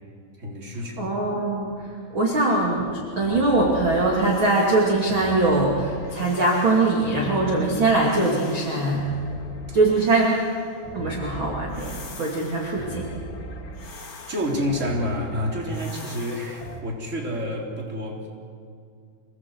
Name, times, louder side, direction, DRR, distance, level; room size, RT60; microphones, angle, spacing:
voice 1, 0.4-1.2 13.8-18.3, equal, 20° right, -1 dB, 3.3 m, -29 dB
voice 2, 1.0-1.7 2.1-9.1 9.7-10.4 10.9-13.1, right 2 dB, 35° right, -2 dB, 2.9 m, -22 dB
sound 1, 3.2-16.8, right 1 dB, 40° left, 2.1 m, -40 dB
26.5 x 18.0 x 8.0 m, 2.2 s
omnidirectional pair, 4.8 m